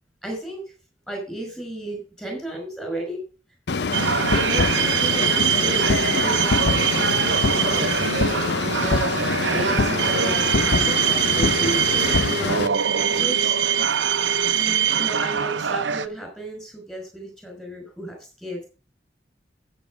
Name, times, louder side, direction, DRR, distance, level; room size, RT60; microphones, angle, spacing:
voice 1, 0.2-0.6 1.1-3.2 4.3-6.9 7.5-7.8 8.8-9.1 9.5-13.5 14.5-18.6, right 1 dB, 5° left, 1 dB, 5.1 m, -33 dB
sound 1, 3.7-12.7, left 4 dB, 65° left, 0.6 m, -24 dB
sound 2, 3.9-16.1, right 8 dB, 90° right, 0.8 m, -23 dB
13.5 x 7.1 x 5.1 m, 0.35 s
head